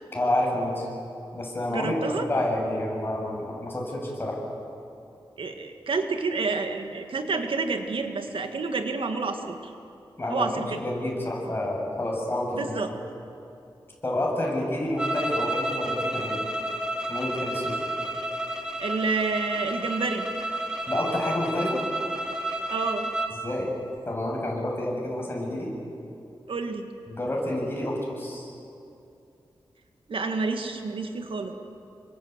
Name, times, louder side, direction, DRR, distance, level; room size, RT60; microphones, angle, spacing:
voice 1, 0.1-0.9 1.3-1.9 2.3-4.4 10.2-10.5 10.8-12.7 14.0-16.4 17.1-17.8 20.9-21.7 23.4-23.7 24.0-25.7 27.1-28.5, left 1 dB, 25° left, -2 dB, 7.6 m, -29 dB
voice 2, 1.7-2.2 5.4-9.7 10.3-10.8 12.5-12.9 18.8-20.3 22.7-23.1 26.5-26.9 30.1-31.5, right 4 dB, 75° right, 5 dB, 2.0 m, -29 dB
sound 1, 15.0-23.4, right 1 dB, 10° right, 1.9 m, -31 dB
28.5 x 24.5 x 8.2 m, 2.6 s
wide cardioid pair, 130°, 9 cm